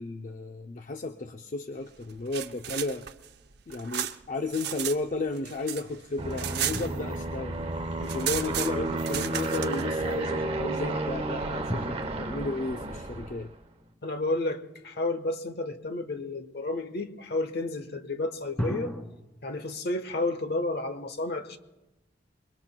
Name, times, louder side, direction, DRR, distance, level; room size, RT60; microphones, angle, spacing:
voice 1, 0.0-3.0 3.7-7.6 8.0-13.5, left 3 dB, 45° left, 6 dB, 0.5 m, -33 dB
sound 1, 2.1-5.0 5.3-7.4 7.7-7.8 8.0-9.8, right 10 dB, 60° right, 0.7 m, -34 dB
Aircraft, 6.2-13.5, right 2 dB, 35° right, 0.9 m, -32 dB
sound 2, 6.7-8.7 11.7-15.0 18.6-19.0, equal, 5° left, 2.2 m, -38 dB
voice 2, 14.0-18.9 19.4-21.6, left 2 dB, 60° left, 9 dB, 1.2 m, -31 dB
26.0 x 23.0 x 2.2 m, 1.0 s
head